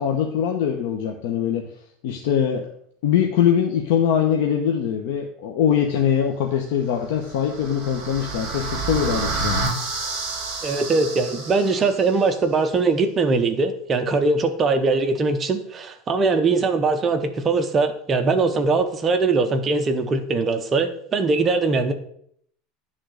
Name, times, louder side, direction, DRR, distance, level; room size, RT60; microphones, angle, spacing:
voice 1, 0.0-1.6 2.0-2.7 3.0-9.6, left 8 dB, 70° left, 3 dB, 0.9 m, -22 dB
sound 1, 7.1-12.2, right 3 dB, 35° right, 2.3 m, -29 dB
voice 2, 10.6-21.9, right 3 dB, 20° right, 7 dB, 0.7 m, -21 dB
10.5 x 3.8 x 6.4 m, 0.65 s
supercardioid pair, 165°, 0 cm